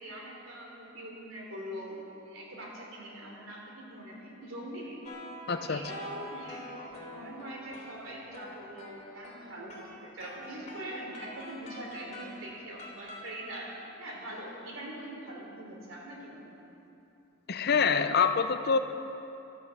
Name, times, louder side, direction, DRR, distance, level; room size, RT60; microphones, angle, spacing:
voice 1, 0.0-5.1 5.5-16.5, right 1 dB, 80° right, -1 dB, 3.5 m, -43 dB
sound 1, 5.0-13.5, left 1 dB, 35° left, 3.0 m, -47 dB
voice 2, 5.5-5.8 17.5-18.8, left 5 dB, 55° left, 9 dB, 0.7 m, -25 dB
13.5 x 12.5 x 7.3 m, 2.8 s
head